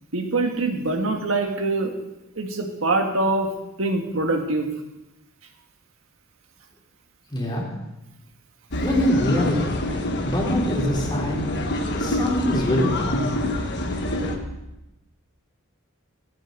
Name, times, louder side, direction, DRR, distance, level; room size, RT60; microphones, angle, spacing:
voice 1, 0.1-1.9 2.4-3.5 3.8-4.7, right 2 dB, 70° right, 3 dB, 1.9 m, -24 dB
voice 2, 7.3-7.6 8.8-9.8 10.2-11.5 11.9-13.3, equal, 20° left, -2 dB, 3.9 m, -24 dB
sound 1, 8.7-14.4, left 1 dB, 55° left, 1.5 m, -26 dB
15.5 x 15.0 x 4.0 m, 0.95 s
head